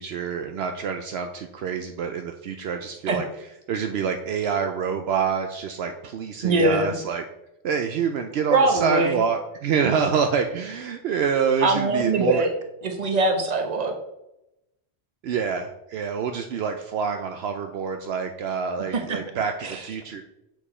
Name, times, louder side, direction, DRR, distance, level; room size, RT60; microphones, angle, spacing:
voice 1, 0.0-3.3 3.7-7.2 7.6-12.5 15.2-20.2, right 6 dB, 70° right, 5 dB, 0.8 m, -26 dB
voice 2, 6.4-6.9 8.5-9.2 11.6-12.5 12.8-13.9 18.9-19.2 19.6-19.9, right 2 dB, 40° right, 4 dB, 1.0 m, -22 dB
6.9 x 4.6 x 4.2 m, 0.88 s
omnidirectional pair, 1.1 m